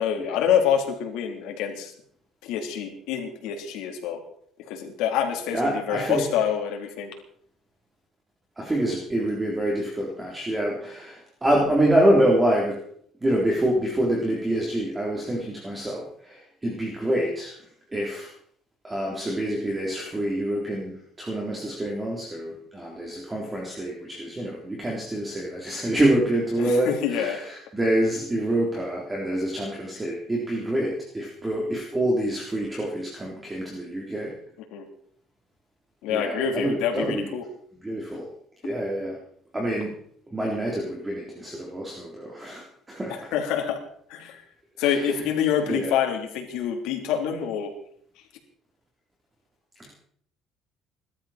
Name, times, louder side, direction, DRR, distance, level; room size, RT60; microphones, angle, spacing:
voice 1, 0.0-1.9 2.4-4.2 4.7-7.1 26.6-27.4 34.7-34.8 36.0-37.4 43.1-43.8 44.1-44.4 44.8-47.7, left 8 dB, 85° left, 3 dB, 3.8 m, -26 dB
voice 2, 5.5-6.2 8.6-12.8 13.2-17.5 17.9-18.3 18.8-34.3 36.1-37.3 37.8-38.3 38.6-39.1 39.5-40.0 40.3-43.2 44.8-45.0 45.7-45.9, right 1 dB, 15° right, -2 dB, 3.7 m, -26 dB
22.0 x 13.0 x 4.5 m, 0.62 s
cardioid pair, 135°, 0 cm